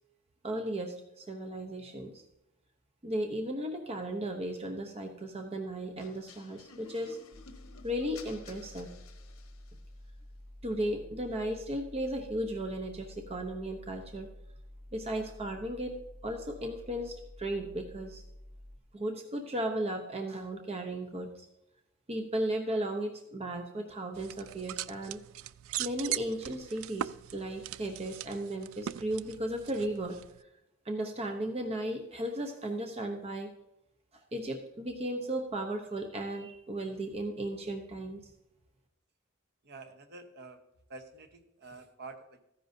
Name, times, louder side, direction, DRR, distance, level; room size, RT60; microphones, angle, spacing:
voice 1, 0.4-2.2 3.0-7.2 7.8-8.9 10.6-14.3 14.9-18.2 18.9-21.5 22.1-25.2 25.8-30.2 30.8-33.5 34.3-38.3, right 1 dB, 30° right, 4 dB, 0.8 m, -35 dB
sound 1, 6.0-9.9, left 5 dB, 70° left, 1.2 m, -54 dB
sound 2, 7.3-18.8, left 1 dB, 85° right, 1.4 m, -50 dB
sound 3, 24.1-30.4, right 12 dB, 65° right, 0.3 m, -40 dB
voice 2, 39.6-40.6 40.9-42.4, right 3 dB, 50° right, 7 dB, 1.1 m, -48 dB
14.0 x 10.0 x 2.7 m, 0.88 s
head